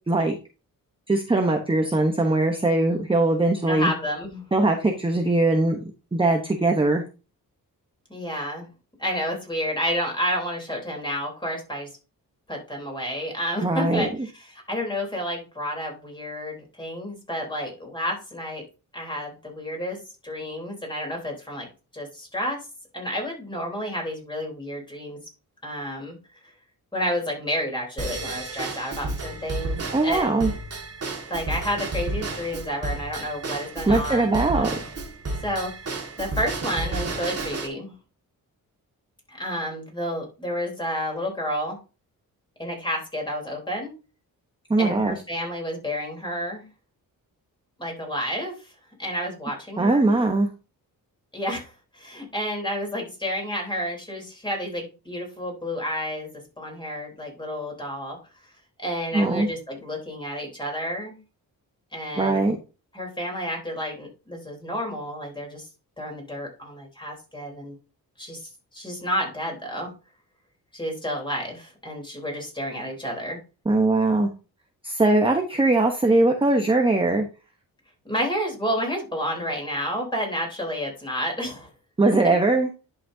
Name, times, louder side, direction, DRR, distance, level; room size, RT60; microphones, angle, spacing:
voice 1, 1.1-3.9 4.5-5.8 6.1-7.0 13.6-14.1 29.9-30.5 33.9-34.7 44.7-45.2 49.8-50.5 59.1-59.5 62.2-62.6 73.7-74.3 74.8-77.2 82.0-82.7, right 2 dB, 15° right, 3 dB, 1.0 m, -21 dB
voice 2, 3.7-4.5 8.1-8.7 9.0-11.9 12.5-18.6 18.9-20.0 20.2-21.7 21.9-22.6 22.9-25.2 25.6-26.2 26.4-26.5 26.9-29.8 30.0-30.5 31.3-34.8 35.4-37.9 39.3-41.8 42.6-43.9 44.8-46.7 47.8-48.7 49.0-50.1 51.3-56.3 56.6-58.2 58.4-58.5 58.8-61.2 61.9-62.6 62.9-65.7 66.0-67.8 68.2-68.4 68.7-69.9 70.7-73.4 78.0-81.7 82.2-82.3, equal, 15° left, 0 dB, 3.7 m, -30 dB
Drum kit / Drum / Bell, 28.0-37.7, right 2 dB, 40° right, 1.9 m, -32 dB
11.0 x 5.9 x 2.7 m, 0.32 s
cardioid pair, 105°, 35 cm